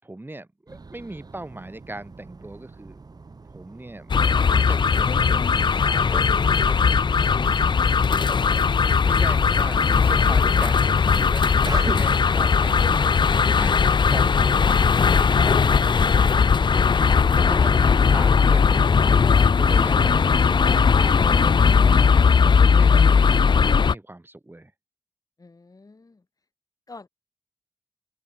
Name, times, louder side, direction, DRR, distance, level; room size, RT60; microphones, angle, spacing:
voice 1, 0.0-3.0 3.5-4.1 4.4-7.3 7.9-13.2 13.6-13.8 14.0-16.4 16.7-18.9 19.4-22.1 22.4-24.7, right 2 dB, 25° right, 4.0 m, -40 dB
sound 1, 0.7-20.3, right 4 dB, 55° right, 3.3 m, -43 dB
sound 2, 4.1-23.9, left 5 dB, 75° left, 0.9 m, -18 dB
voice 2, 12.2-12.6 22.7-22.9 25.4-26.2 26.9-27.1, left 3 dB, 50° left, 5.8 m, -45 dB
open air
cardioid pair, 55°, 8 cm